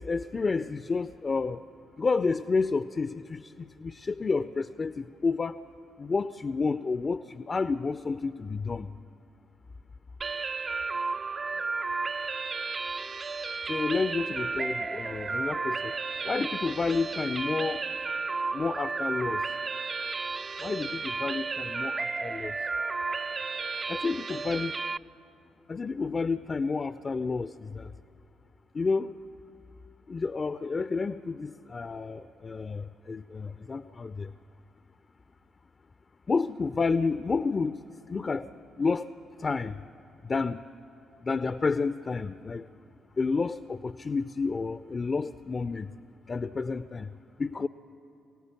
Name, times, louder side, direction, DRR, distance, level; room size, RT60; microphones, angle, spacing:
voice 1, 0.0-1.6 2.0-5.6 6.0-8.9 13.7-15.9 16.2-17.8 18.5-19.5 20.6-22.5 23.9-24.7 25.7-27.9 28.7-29.2 30.1-34.3 36.3-38.5 38.8-39.1 39.4-39.8 40.2-40.6 41.2-42.7 43.2-45.9 46.3-47.1 47.4-47.7, left 4 dB, 35° left, 14 dB, 0.5 m, -30 dB
sound 1, 10.2-25.0, right 4 dB, 35° right, 0.5 m, -33 dB
24.0 x 17.5 x 7.0 m, 2.9 s
figure-of-eight pair, 40°, 0 cm